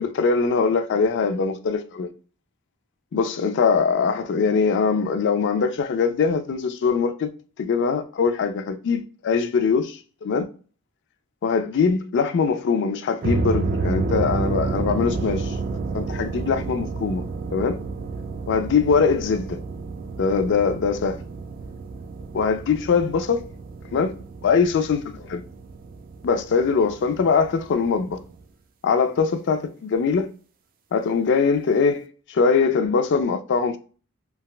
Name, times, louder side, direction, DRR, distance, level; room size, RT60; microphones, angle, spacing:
voice 1, 0.0-2.1 3.1-7.3 7.6-10.5 11.4-15.5 15.9-17.2 17.5-17.8 18.5-19.6 20.2-21.2 22.3-23.4 23.9-24.1 24.4-25.4 26.2-28.2 28.8-30.3 30.9-33.8, left 5 dB, 55° left, 0.4 m, -22 dB
sound 1, 13.2-28.4, right 3 dB, 40° right, 0.3 m, -30 dB
3.5 x 2.1 x 2.2 m
head